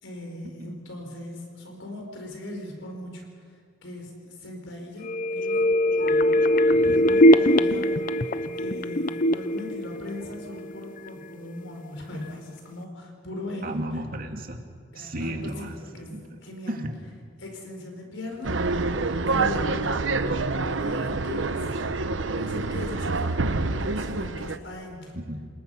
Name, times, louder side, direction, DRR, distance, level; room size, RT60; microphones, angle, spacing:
voice 1, 0.0-3.3 3.8-4.1 4.4-5.6 6.0-6.4 6.8-7.9 8.2-13.8 14.9-16.1 16.4-16.8 17.4-18.5 19.3-21.7 22.3-25.2, left 2 dB, 85° left, 2 dB, 4.7 m, -39 dB
sound 1, 5.0-10.7 11.1-11.2, left 1 dB, 45° left, 0.7 m, -21 dB
voice 2, 13.6-14.6 14.9-15.8 16.1-16.4 16.7-17.0 25.1-25.5, right 1 dB, 50° right, 4 dB, 2.2 m, -34 dB
sound 2, 18.4-24.6, right 3 dB, 80° right, 0.9 m, -27 dB
28.0 x 20.0 x 5.6 m, 2.1 s
head